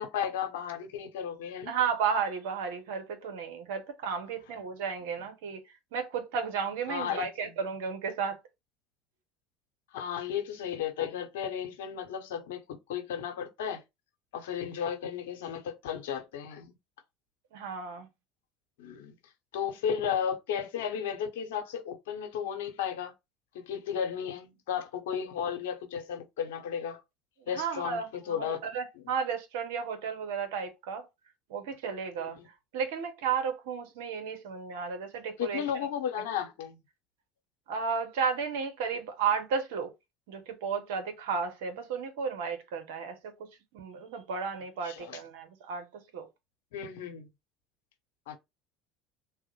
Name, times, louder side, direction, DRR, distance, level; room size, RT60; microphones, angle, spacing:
voice 1, 0.0-1.7 5.0-5.1 6.9-7.3 9.9-12.6 12.9-13.8 14.3-16.7 18.8-19.1 19.5-23.1 23.5-27.0 27.5-28.6 32.2-32.5 35.4-36.8 44.8-45.2 46.7-47.3 48.3-48.4, left 8 dB, 75° left, 0.8 m, -34 dB
voice 2, 1.7-5.6 5.9-8.4 17.5-18.1 27.5-31.0 31.5-32.4 32.7-35.6 37.7-39.9 40.3-43.2 43.7-45.8 46.1-46.3, right 6 dB, 70° right, 0.7 m, -33 dB
3.4 x 2.0 x 3.0 m
hypercardioid pair, 75°, 0 cm